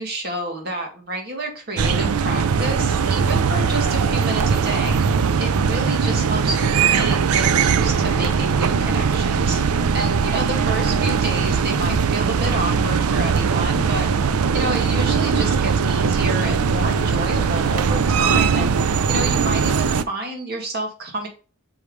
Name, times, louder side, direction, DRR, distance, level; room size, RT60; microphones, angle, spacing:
voice 1, 0.0-5.0 5.4-9.6 9.9-14.1 14.5-18.7 19.1-21.3, right 2 dB, 45° right, 2 dB, 2.0 m, -29 dB
sound 1, 1.8-20.0, right 6 dB, 80° right, 0.5 m, -20 dB
6.3 x 5.0 x 3.3 m, 0.35 s
head